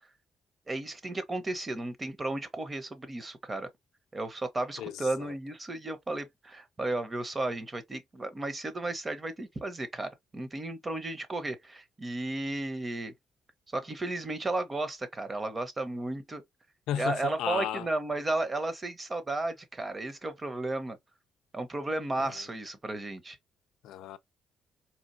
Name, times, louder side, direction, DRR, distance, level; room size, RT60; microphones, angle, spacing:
voice 1, 0.7-3.7 4.1-13.1 13.7-16.4 17.0-21.0 21.5-23.4, right 2 dB, 25° right, 0.9 m, -34 dB
voice 2, 4.8-5.3 16.9-17.9 23.8-24.2, left 11 dB, 90° left, 0.4 m, -34 dB
4.3 x 2.4 x 2.6 m
cardioid pair, 90°, 0 cm